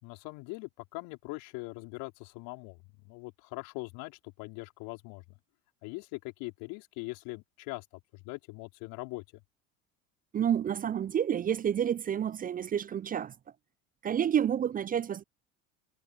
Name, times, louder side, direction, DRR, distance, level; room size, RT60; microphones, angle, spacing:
voice 1, 0.0-5.2 5.8-7.9 8.1-9.4, left 27 dB, 60° left, 4.3 m, -42 dB
voice 2, 10.3-13.3 14.0-15.2, right 9 dB, 25° right, 0.5 m, -29 dB
hypercardioid pair, 70°, 38 cm